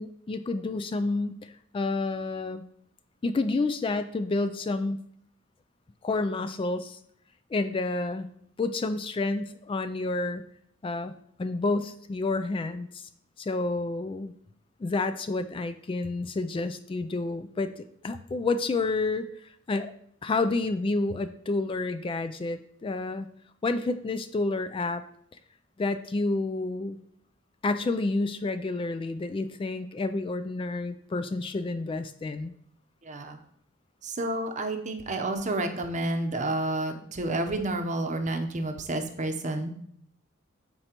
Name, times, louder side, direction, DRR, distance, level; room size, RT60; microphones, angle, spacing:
voice 1, 0.0-2.6 3.2-5.0 6.0-7.0 7.5-8.3 8.6-10.4 10.8-13.1 13.4-14.3 14.8-19.9 20.2-23.3 23.6-25.0 25.8-27.0 27.6-32.5, left 3 dB, 25° left, 10 dB, 0.3 m, -29 dB
voice 2, 33.0-33.4 34.0-39.7, right 2 dB, 35° right, 5 dB, 0.8 m, -30 dB
13.0 x 4.4 x 2.9 m, 0.68 s
head